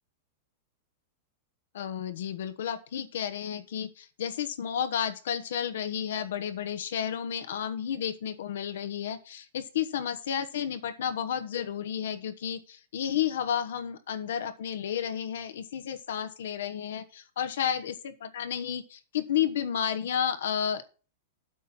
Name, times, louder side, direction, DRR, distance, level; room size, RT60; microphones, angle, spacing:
voice 1, 1.7-17.9 18.2-20.8, left 9 dB, 80° left, 10 dB, 1.1 m, -32 dB
8.4 x 6.0 x 5.6 m, 0.36 s
supercardioid pair, 160°, 0 cm